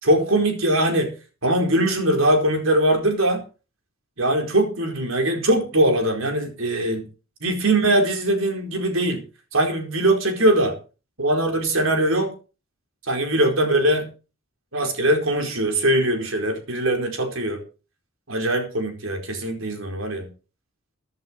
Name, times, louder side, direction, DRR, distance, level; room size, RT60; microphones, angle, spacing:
voice 1, 0.0-1.1 1.4-3.4 4.2-7.0 7.4-9.2 9.5-10.7 11.2-12.3 13.1-14.1 14.7-17.6 18.3-20.3, right 1 dB, 70° right, 4 dB, 4.5 m, -21 dB
15.5 x 10.5 x 4.6 m, 0.34 s
head